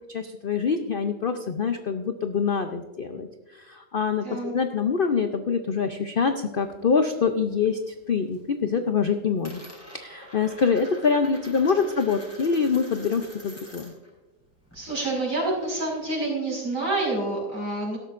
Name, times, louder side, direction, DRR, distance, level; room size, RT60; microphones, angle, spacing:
voice 1, 0.1-9.7 9.9-13.9, left 5 dB, 75° left, 7 dB, 0.5 m, -25 dB
Coin (dropping), 6.6-7.7 8.0-8.5 8.8-14.1 14.4-16.1, equal, 10° left, 3.6 m, -46 dB
voice 2, 14.7-18.0, right 2 dB, 80° right, -4 dB, 5.7 m, -28 dB
17.5 x 12.5 x 2.5 m, 1.2 s
omnidirectional pair, 1.8 m